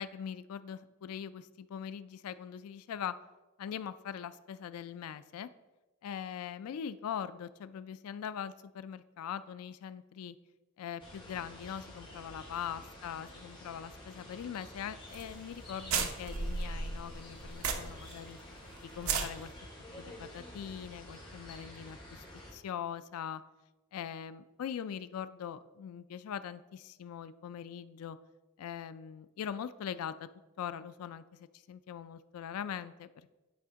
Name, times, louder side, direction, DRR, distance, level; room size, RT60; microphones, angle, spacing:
voice 1, 0.0-3.1 3.6-5.5 6.0-10.4 10.8-18.4 18.8-19.5 20.0-22.3 22.5-23.4 23.9-28.2 28.6-30.3 30.6-33.3, left 8 dB, 90° left, 15 dB, 0.3 m, -41 dB
sound 1, 11.0-22.5, left 1 dB, 25° left, 1.8 m, -50 dB
sound 2, 15.1-15.3 15.5-15.6 15.9-18.1 18.4-18.5 18.9-19.3, right 5 dB, 75° right, 0.8 m, -33 dB
10.0 x 5.0 x 3.6 m, 1.1 s
head